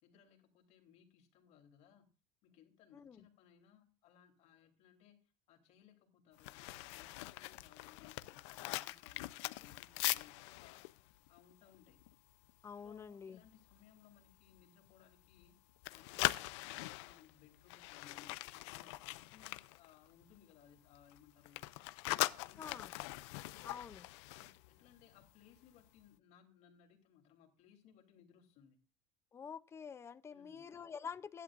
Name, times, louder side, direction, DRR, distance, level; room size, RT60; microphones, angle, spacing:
voice 1, 0.0-2.1 2.4-10.9 11.3-12.0 12.8-15.6 15.9-21.6 22.0-22.9 24.3-28.8 30.3-30.8, left 9 dB, 50° left, 3.2 m, -64 dB
sound 1, 6.4-12.5 12.8-13.0 13.4-13.8 14.3-15.5 15.8-20.5 20.8-25.3 25.6-25.8, left 20 dB, 90° left, 0.5 m, -42 dB
voice 2, 12.6-13.4 22.6-22.9 23.6-24.1 29.3-31.4, left 6 dB, 20° left, 0.5 m, -48 dB
16.0 x 11.0 x 2.5 m
cardioid pair, 155°, 14 cm